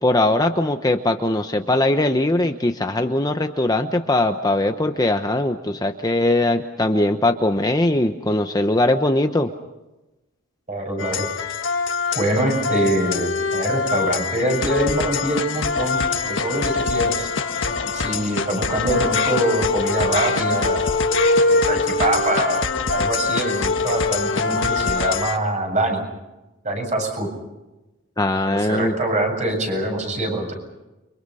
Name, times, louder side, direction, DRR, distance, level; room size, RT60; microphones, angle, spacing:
voice 1, 0.0-9.5 28.2-28.9, left 1 dB, 20° left, 6 dB, 0.9 m, -20 dB
voice 2, 10.7-11.2 12.1-16.0 16.2-17.3 17.9-20.8 21.5-22.6 22.9-26.0 26.6-27.3 28.4-30.5, right 1 dB, 35° right, 2 dB, 7.7 m, -24 dB
sound 1, 11.0-25.4, left 4 dB, 65° left, 1.7 m, -23 dB
30.0 x 25.0 x 5.6 m, 1.0 s
head